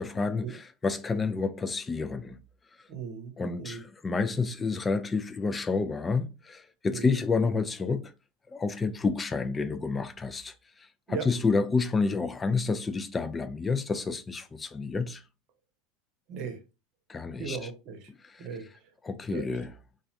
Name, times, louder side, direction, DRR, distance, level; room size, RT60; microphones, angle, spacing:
voice 1, 0.0-2.4 3.4-8.1 8.5-15.2 17.1-17.6 18.2-18.5 19.0-19.7, left 4 dB, 20° left, 0.4 m, -29 dB
voice 2, 2.9-3.8 6.9-7.2 11.1-11.3 16.3-16.6 17.4-18.1 18.4-18.6 19.3-19.5, right 6 dB, 55° right, 0.8 m, -37 dB
3.1 x 2.4 x 2.5 m
hypercardioid pair, 85°, 0 cm